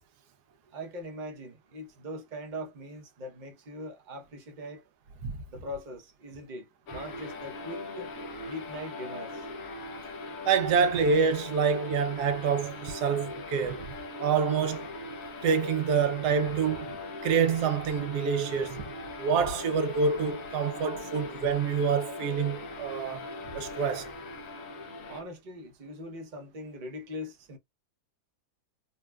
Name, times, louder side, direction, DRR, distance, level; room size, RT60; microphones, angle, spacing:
voice 1, 0.7-4.8 5.5-8.1 8.4-9.5 25.1-27.6, equal, 35° right, 0.8 m, -41 dB
sound 1, 6.9-25.2, left 2 dB, 60° left, 1.1 m, -40 dB
voice 2, 10.5-13.9 14.2-14.9 15.4-17.0 17.2-18.9 19.2-23.3 23.5-24.1, right 6 dB, 80° right, 1.3 m, -27 dB
4.0 x 2.2 x 2.2 m
omnidirectional pair, 1.7 m